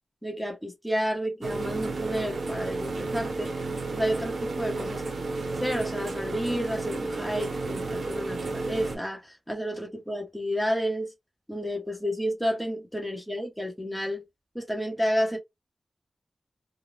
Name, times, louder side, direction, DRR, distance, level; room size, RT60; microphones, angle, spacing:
voice 1, 0.2-3.5 3.9-11.1 11.5-14.2 14.5-15.4, equal, ahead, 1.0 m, -31 dB
sound 1, 1.4-9.0, right 3 dB, 80° right, 0.7 m, -32 dB
2.5 x 2.2 x 3.1 m
wide cardioid pair, 100°, 0 cm